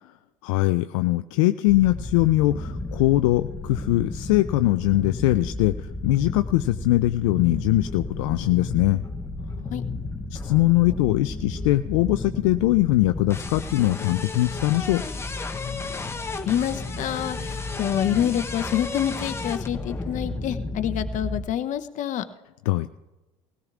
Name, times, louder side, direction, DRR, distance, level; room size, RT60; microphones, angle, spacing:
voice 1, 0.4-9.0 10.3-15.0 22.7-22.9, left 17 dB, 70° left, 10 dB, 0.4 m, -21 dB
sound 1, 1.7-21.5, left 2 dB, 15° left, 0.8 m, -33 dB
voice 2, 9.5-9.8 16.4-22.2, left 10 dB, 50° left, 10 dB, 0.8 m, -27 dB
19.0 x 16.5 x 2.4 m, 1.1 s
hypercardioid pair, 75°, 17 cm